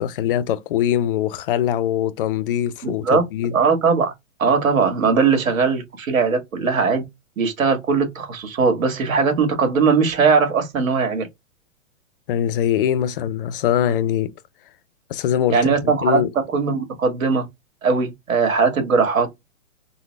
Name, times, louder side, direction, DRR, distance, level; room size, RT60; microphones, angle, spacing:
voice 1, 0.0-3.5 12.3-14.3 15.1-16.3, left 10 dB, 45° left, 0.4 m, -22 dB
voice 2, 2.8-3.2 3.5-4.1 4.4-7.0 7.4-11.3 15.5-16.2 16.5-17.5 17.8-19.3, right 5 dB, 75° right, 1.6 m, -19 dB
3.9 x 2.0 x 3.2 m
hypercardioid pair, 145°, 41 cm